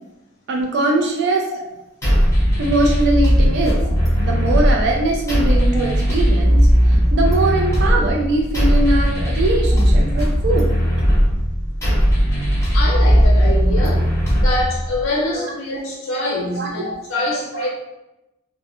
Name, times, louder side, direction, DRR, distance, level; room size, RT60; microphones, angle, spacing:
voice 1, 0.5-1.5 2.6-3.8 4.2-10.8 15.3-15.4 16.1-16.2 16.5-16.7 17.5-17.7, right 2 dB, 60° right, 1 dB, 0.3 m, -21 dB
sound 1, 2.0-15.0, equal, 15° left, 0.7 m, -17 dB
voice 2, 12.7-14.1 14.4-17.7, left 1 dB, 80° left, -4 dB, 0.5 m, -24 dB
2.1 x 2.1 x 2.8 m, 0.93 s
head